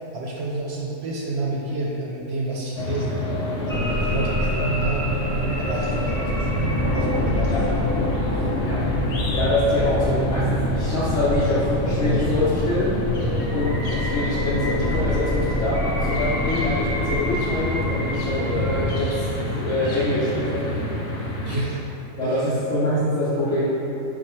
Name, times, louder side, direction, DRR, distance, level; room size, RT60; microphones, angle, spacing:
voice 1, 0.1-3.3 3.7-5.2 5.6-7.9 13.2-13.4 21.2-21.8 22.2-22.4, right 2 dB, 65° right, -3 dB, 0.7 m, -30 dB
sound 1, 2.8-21.6, left 1 dB, 55° left, 0.8 m, -27 dB
sound 2, 3.7-18.9, left 1 dB, 15° left, 0.4 m, -28 dB
voice 2, 9.3-13.0 13.5-19.3 19.6-20.7 22.1-23.6, left 1 dB, 75° left, -10 dB, 1.1 m, -24 dB
4.4 x 2.3 x 4.2 m, 3.0 s
omnidirectional pair, 1.3 m